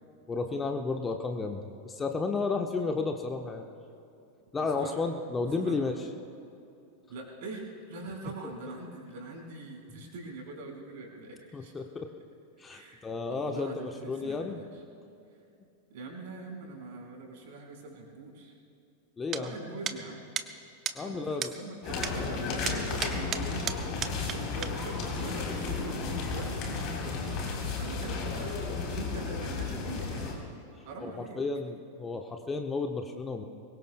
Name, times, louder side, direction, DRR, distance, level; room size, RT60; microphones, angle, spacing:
voice 1, 0.3-3.6 4.5-5.9 8.4-8.5 11.5-12.1 12.6-14.6 19.2-19.5 20.9-21.5 31.0-33.4, left 4 dB, 15° left, 4 dB, 1.0 m, -32 dB
voice 2, 4.5-5.0 5.6-6.0 7.1-11.7 12.7-13.0 13.3-14.8 15.9-18.5 19.3-20.2 21.0-27.4 27.7-30.4 30.8-31.4, right 2 dB, 50° right, 0 dB, 4.5 m, -43 dB
sound 1, 19.3-19.4 19.9-20.0 20.4-20.5 20.9-21.0 21.4-21.5 22.0-22.1 22.7-24.4 24.6-24.7, right 9 dB, 30° right, 0.8 m, -33 dB
sound 2, 21.8-30.3, left 4 dB, 40° left, 3.6 m, -33 dB
24.5 x 22.0 x 2.2 m, 2.7 s
figure-of-eight pair, 90°, 0 cm